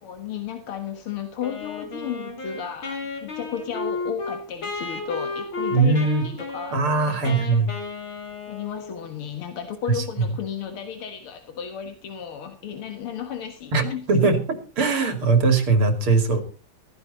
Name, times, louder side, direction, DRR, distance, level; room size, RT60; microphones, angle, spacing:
voice 1, 0.0-6.8 7.1-7.6 8.5-14.1, left 8 dB, 90° left, 6 dB, 2.4 m, -34 dB
Wind instrument woodwind instrument, 1.4-9.1, left 3 dB, 70° left, 4.8 m, -33 dB
voice 2, 5.7-6.3 6.7-7.7 9.9-10.3 13.7-14.4 14.8-16.4, right 4 dB, 85° right, 7 dB, 3.5 m, -20 dB
15.5 x 15.0 x 4.1 m, 0.36 s
omnidirectional pair, 2.3 m